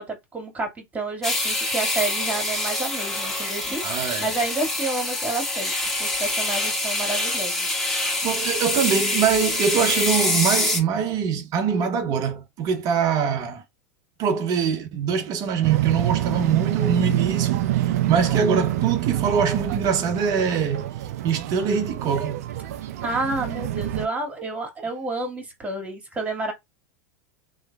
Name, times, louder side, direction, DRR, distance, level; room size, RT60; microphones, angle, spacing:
voice 1, 0.0-5.7 6.0-7.8 23.0-26.5, right 2 dB, 15° right, 1.9 m, -30 dB
sound 1, 1.2-10.8, left 2 dB, 5° left, 1.8 m, -25 dB
voice 2, 3.8-4.3 8.0-13.6 14.2-20.9 21.2-22.4, right 6 dB, 45° right, 0.9 m, -23 dB
sound 2, 15.6-24.1, right 13 dB, 70° right, 0.4 m, -26 dB
3.2 x 3.1 x 2.3 m
hypercardioid pair, 95°, 9 cm